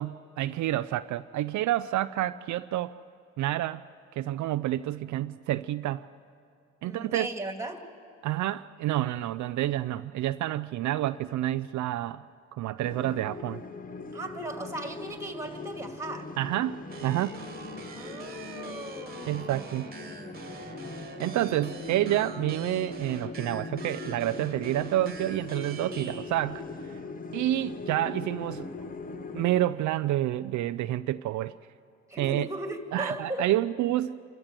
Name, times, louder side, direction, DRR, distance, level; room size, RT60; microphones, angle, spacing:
voice 1, 0.0-3.0 3.4-3.8 4.2-6.1 6.8-7.3 8.2-12.2 12.5-13.6 16.4-17.4 19.3-19.9 21.2-26.6 27.3-28.7 29.3-31.6 32.2-32.5 32.9-34.2, right 14 dB, 70° right, 13 dB, 0.4 m, -29 dB
voice 2, 6.8-7.8 14.1-16.3 17.9-19.6 19.9-20.5 27.5-27.7 32.1-33.5, right 2 dB, 10° right, 5 dB, 2.2 m, -37 dB
sound 1, 12.8-29.7, left 4 dB, 30° left, 1.0 m, -40 dB
sound 2, 16.9-26.3, right 4 dB, 30° right, 1.6 m, -45 dB
27.0 x 13.5 x 7.5 m, 2.5 s
cardioid pair, 90°, 30 cm